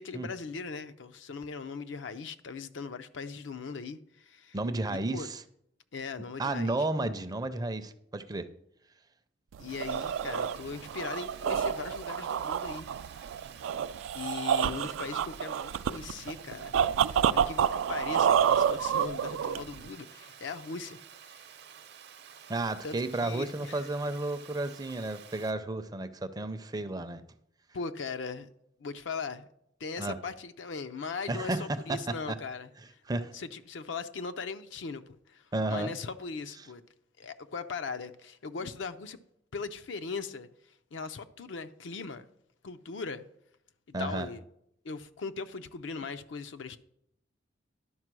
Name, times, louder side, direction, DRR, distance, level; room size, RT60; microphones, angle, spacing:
voice 1, 0.0-4.6 4.9-5.3 5.9-6.8 9.6-13.3 14.1-16.8 17.1-21.0 21.3-21.5 22.8-23.9 27.7-28.5 28.8-29.5 29.8-33.0 33.3-36.8 37.2-39.2 39.5-40.5 40.9-42.3 42.6-43.2 44.0-44.4 44.8-46.8, left 4 dB, 70° left, 0.5 m, -39 dB
voice 2, 4.5-5.4 6.4-8.5 22.5-27.2 30.0-30.2 31.3-32.0 32.3-32.4 33.1-33.3 35.5-35.9 43.9-44.3, right 2 dB, 20° right, 0.5 m, -32 dB
sound 1, 9.5-19.9, right 8 dB, 85° right, 0.3 m, -29 dB
Water, 9.7-25.5, right 8 dB, 60° right, 0.7 m, -51 dB
11.0 x 5.1 x 6.1 m
head